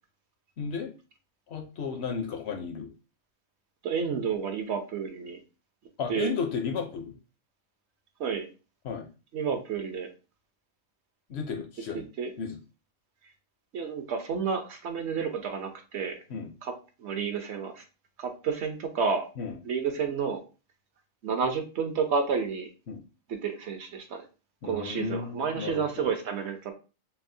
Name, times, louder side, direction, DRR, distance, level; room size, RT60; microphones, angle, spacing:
voice 1, 0.6-0.9 1.5-2.9 6.0-7.2 8.8-9.1 11.3-12.0 12.4-12.6 16.3-16.5 19.4-19.6 22.9-23.0 24.6-26.1, left 5 dB, 60° left, 5 dB, 0.8 m, -34 dB
voice 2, 3.8-5.4 6.1-6.3 8.2-8.5 9.3-10.1 11.9-12.3 13.7-16.2 16.6-16.7 17.0-17.8 18.2-19.3 19.6-20.4 21.2-22.7 23.3-24.2 24.6-26.7, right 6 dB, 65° right, 6 dB, 0.9 m, -30 dB
5.9 x 2.0 x 2.6 m, 0.32 s
omnidirectional pair, 1.3 m